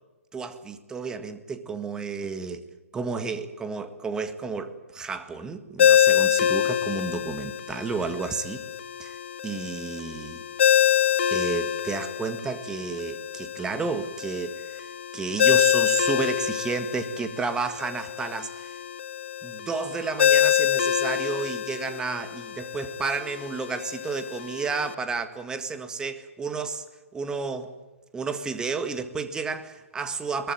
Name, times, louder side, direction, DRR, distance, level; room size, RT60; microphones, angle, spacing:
voice 1, 0.3-2.6 2.9-8.6 9.0-9.2 9.4-10.4 11.3-18.8 19.4-26.8 27.1-27.7 28.1-30.5, right 4 dB, 10° right, 10 dB, 1.8 m, -31 dB
Ringtone, 5.8-24.9, left 10 dB, 55° left, 0.7 m, -26 dB
22.5 x 19.5 x 9.2 m, 1.1 s
figure-of-eight pair, 130°, 8 cm